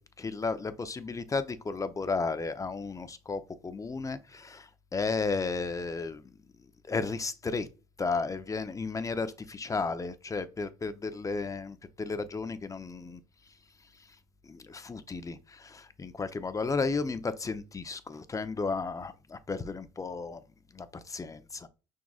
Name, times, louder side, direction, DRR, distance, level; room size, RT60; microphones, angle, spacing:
voice 1, 0.2-6.3 6.9-7.7 8.0-13.2 14.4-20.4 20.7-21.7, left 4 dB, 20° left, 0.6 m, -33 dB
5.9 x 3.7 x 2.3 m
hypercardioid pair, 60°, 15 cm